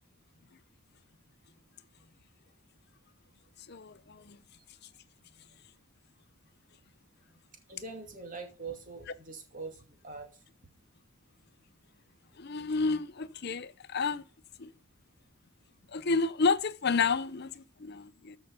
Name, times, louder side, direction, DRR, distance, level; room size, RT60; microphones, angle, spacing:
voice 1, 3.7-4.4 12.4-14.2 14.6-14.7 15.9-18.4, left 4 dB, 50° left, 0.6 m, -30 dB
voice 2, 7.7-10.3, right 4 dB, 35° right, 2.5 m, -43 dB
13.5 x 5.7 x 5.5 m
head